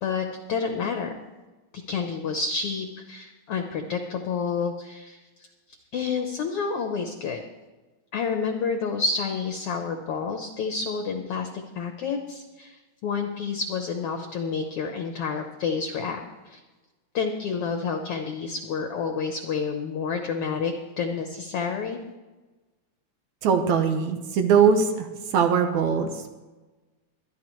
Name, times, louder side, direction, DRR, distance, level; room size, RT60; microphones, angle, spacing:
voice 1, 0.0-1.1 1.9-5.2 5.9-7.4 8.1-11.5 11.7-12.8 13.0-16.6 17.1-22.0, left 5 dB, 65° left, 4 dB, 1.5 m, -29 dB
voice 2, 23.4-26.3, right 6 dB, 75° right, 6 dB, 2.4 m, -21 dB
23.0 x 10.0 x 3.1 m, 1.2 s
omnidirectional pair, 3.5 m